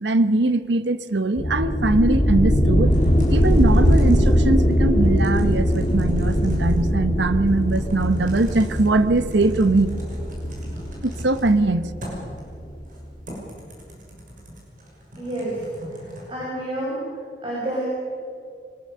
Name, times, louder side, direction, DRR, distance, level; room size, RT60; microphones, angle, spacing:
voice 1, 0.0-2.9 3.3-9.9 11.0-11.9, right 2 dB, 75° right, 12 dB, 0.9 m, -21 dB
sound 1, 1.4-12.8, equal, 35° left, 2.0 m, -21 dB
Typing, 2.9-16.3, equal, 45° right, 6.2 m, -41 dB
voice 2, 15.2-15.6 16.3-17.0 17.4-17.8, right 1 dB, 30° right, -6 dB, 6.5 m, -28 dB
23.5 x 20.5 x 6.8 m, 2.3 s
head